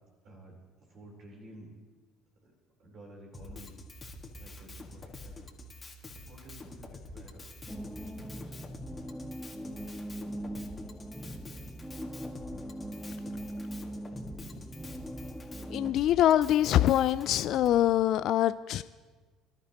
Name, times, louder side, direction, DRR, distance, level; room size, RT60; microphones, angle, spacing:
voice 1, 0.9-1.7 2.8-3.8 4.4-5.5 5.9-7.4 7.8-8.6, right 1 dB, 55° right, 4.0 m, -51 dB
Drum kit, 3.3-17.8, left 1 dB, 30° left, 2.1 m, -47 dB
sound 1, 7.7-15.9, right 1 dB, ahead, 0.8 m, -41 dB
voice 2, 15.7-18.8, left 12 dB, 60° left, 0.4 m, -24 dB
26.5 x 12.5 x 3.0 m
hypercardioid pair, 60°, 0 cm